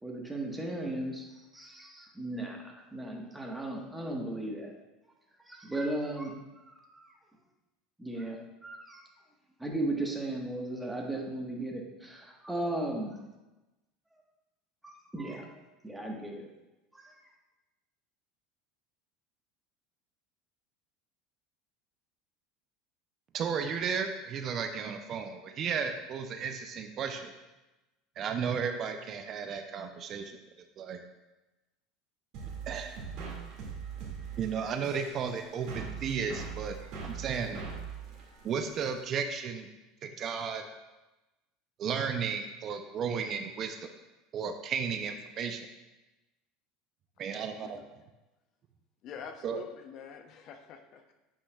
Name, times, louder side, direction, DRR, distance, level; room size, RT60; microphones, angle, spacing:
voice 1, 0.0-1.3 1.5-4.7 5.5-6.3 6.7-7.0 8.0-8.4 8.6-9.0 9.6-13.2 14.8-16.4 16.9-17.0, right 1 dB, 5° right, 0 dB, 1.3 m, -36 dB
voice 2, 23.3-27.3 28.2-30.4 30.8-31.0 32.7-33.0 34.4-36.7 37.0-37.6 38.4-39.7 40.0-40.6 41.8-43.8 44.3-45.6 47.2-47.8 49.4-49.6, right 6 dB, 45° right, 7 dB, 0.5 m, -34 dB
sound 1, 32.3-39.0, right 6 dB, 60° right, 2.1 m, -41 dB
voice 3, 49.0-51.1, left 7 dB, 55° left, 6 dB, 0.6 m, -46 dB
8.0 x 5.6 x 2.3 m, 1.1 s
hypercardioid pair, 90°, 0 cm